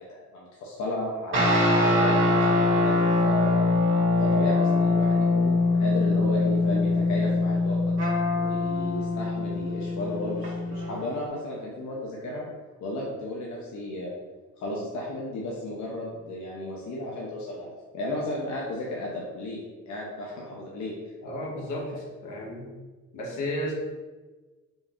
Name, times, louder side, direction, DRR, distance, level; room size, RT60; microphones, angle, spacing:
voice 1, 0.0-3.7 4.2-12.5 12.8-14.1 14.6-20.9, left 1 dB, 70° left, -4 dB, 0.8 m, -34 dB
sound 1, 1.3-11.0, left 2 dB, 40° right, 1.1 m, -23 dB
voice 2, 21.2-22.7 23.1-23.7, left 1 dB, 85° left, -2 dB, 1.0 m, -33 dB
4.0 x 2.4 x 3.5 m, 1.3 s
cardioid pair, 90°, 30 cm